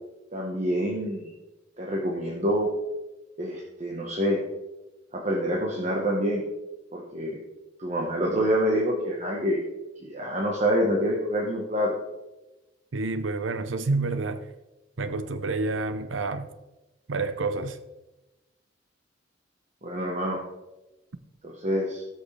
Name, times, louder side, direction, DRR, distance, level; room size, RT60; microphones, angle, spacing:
voice 1, 0.3-1.3 1.8-2.7 3.4-4.4 5.1-6.4 6.9-7.4 7.8-9.6 10.0-12.0 19.8-20.4 21.4-22.0, equal, 35° right, 1.3 m, -26 dB
voice 2, 12.9-14.5 15.0-16.5 17.1-17.8, right 3 dB, 80° right, 0.7 m, -28 dB
18.5 x 6.3 x 3.4 m
head